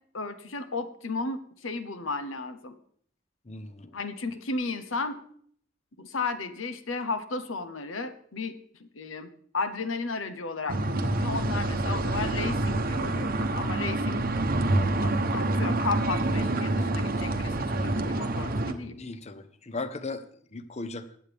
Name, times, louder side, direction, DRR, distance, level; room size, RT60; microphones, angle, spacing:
voice 1, 0.1-2.7 3.9-5.2 6.0-8.5 8.8-9.3 9.5-14.2 15.0-19.0, left 3 dB, 85° left, 11 dB, 1.0 m, -34 dB
voice 2, 3.5-4.0 18.9-20.2 20.5-21.0, left 3 dB, 35° left, 12 dB, 0.8 m, -37 dB
sound 1, 10.7-18.7, right 2 dB, 50° right, 0.9 m, -27 dB
20.5 x 8.1 x 3.5 m, 0.62 s
head